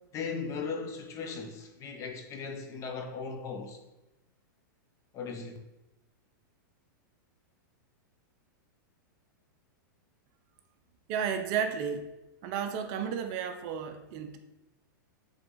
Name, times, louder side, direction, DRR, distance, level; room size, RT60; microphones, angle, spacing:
voice 1, 0.1-3.8 5.1-5.6, left 5 dB, 30° left, 0.9 m, -37 dB
voice 2, 11.1-12.1 12.4-14.4, right 7 dB, 45° right, 0.6 m, -32 dB
7.7 x 3.5 x 3.9 m
hypercardioid pair, 135°, 11 cm